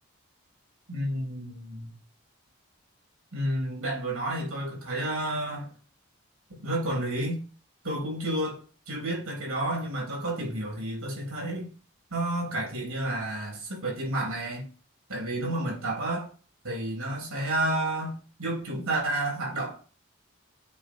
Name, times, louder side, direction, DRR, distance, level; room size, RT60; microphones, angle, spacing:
voice 1, 0.9-2.0 3.3-5.7 6.5-7.4 7.8-11.7 12.1-14.7 15.1-16.3 16.6-19.8, right 1 dB, 85° right, 3.5 m, -31 dB
8.4 x 3.2 x 4.7 m
head